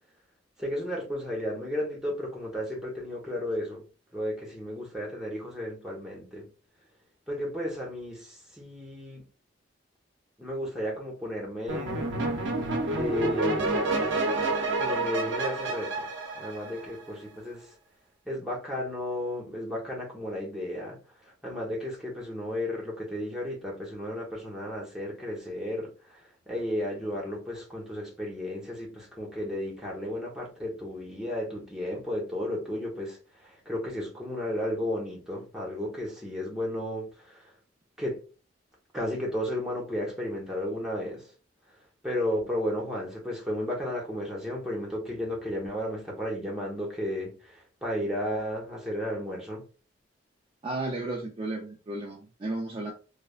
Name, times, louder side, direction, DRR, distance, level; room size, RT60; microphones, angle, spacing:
voice 1, 0.6-3.8 4.1-6.5 7.3-9.2 10.4-12.1 12.9-13.7 14.7-16.0 16.4-17.7 18.3-21.0 21.4-26.2 26.5-33.2 33.4-37.4 38.0-38.2 38.9-41.3 42.0-49.6, left 1 dB, 5° right, 0.8 m, -33 dB
sound 1, 11.7-17.1, right 2 dB, 85° right, 0.6 m, -29 dB
voice 2, 50.6-52.9, right 2 dB, 30° right, 0.4 m, -33 dB
3.2 x 2.0 x 2.3 m
head